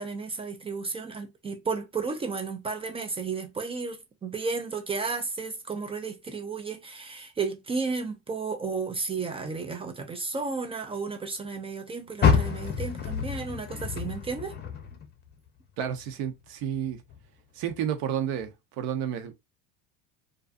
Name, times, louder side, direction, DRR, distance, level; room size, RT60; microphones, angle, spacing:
voice 1, 0.0-14.5, right 4 dB, 15° right, 0.3 m, -33 dB
Car, 12.2-15.4 15.8-17.2 17.7-17.8 18.4-18.5, left 6 dB, 25° left, 0.6 m, -28 dB
voice 2, 15.8-17.0 17.5-19.3, right 9 dB, 65° right, 0.8 m, -31 dB
2.4 x 2.4 x 2.4 m
supercardioid pair, 105°, 38 cm